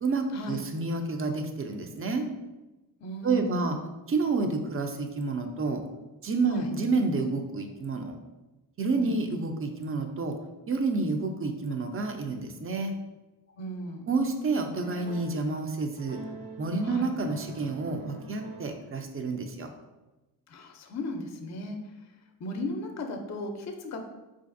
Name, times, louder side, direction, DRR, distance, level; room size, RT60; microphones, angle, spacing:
voice 1, 0.0-2.2 3.2-3.8 4.1-5.8 6.2-8.1 8.8-10.3 10.7-12.9 14.1-16.2 16.6-19.7, right 3 dB, 35° right, 5 dB, 0.4 m, -29 dB
voice 2, 3.0-3.8 6.5-6.7 9.0-9.1 13.6-14.0 16.8-17.1 20.5-21.8 22.4-24.0, left 1 dB, 40° left, 5 dB, 0.5 m, -36 dB
sound 1, 14.8-15.5 16.0-19.0, right 3 dB, 55° right, 0.8 m, -45 dB
4.5 x 2.5 x 2.5 m, 1.1 s
cardioid pair, 90°, 42 cm